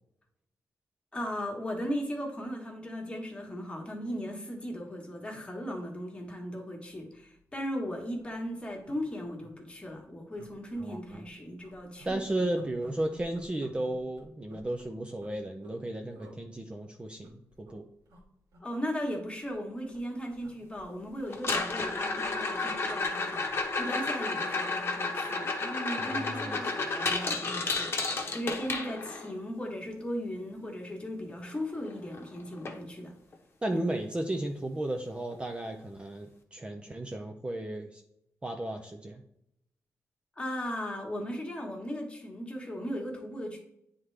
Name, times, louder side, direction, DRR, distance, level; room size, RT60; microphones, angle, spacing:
voice 1, 1.1-12.2 18.6-27.9 28.3-33.1 33.7-33.8 40.4-43.6, equal, 20° left, 1 dB, 1.4 m, -37 dB
sound 1, 7.4-7.5 7.8-7.9 8.1-8.4 8.8-9.5 9.9-10.0 10.4-11.3 11.6-15.8 16.1-16.4 17.0-17.8 18.1-18.2 18.5-19.7 19.9-24.5 24.8-25.0, right 1 dB, 90° right, 2.0 m, -53 dB
voice 2, 10.8-11.2 12.0-17.8 26.0-26.6 33.6-38.0 38.4-39.2, right 1 dB, 20° right, 3 dB, 0.5 m, -34 dB
sound 2, 21.3-29.3 31.6-31.7 31.9-32.2 32.7-32.8 33.3-33.4 35.3-35.4, left 3 dB, 45° left, 1.0 m, -32 dB
9.2 x 3.6 x 3.3 m, 0.76 s
wide cardioid pair, 125°, 6 cm